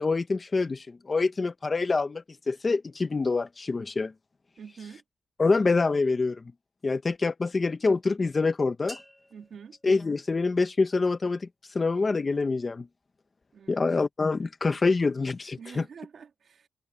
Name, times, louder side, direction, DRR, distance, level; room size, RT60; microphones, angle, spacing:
voice 1, 0.0-4.1 5.4-6.4 6.8-9.0 9.8-12.9 13.7-15.8, left 3 dB, 25° left, 0.6 m, -26 dB
voice 2, 4.6-5.0 9.3-9.8 13.5-13.8 15.6-16.7, right 6 dB, 55° right, 2.1 m, -46 dB
sound 1, 8.9-10.9, equal, 5° left, 3.7 m, -50 dB
wide cardioid pair, 175°, 0 cm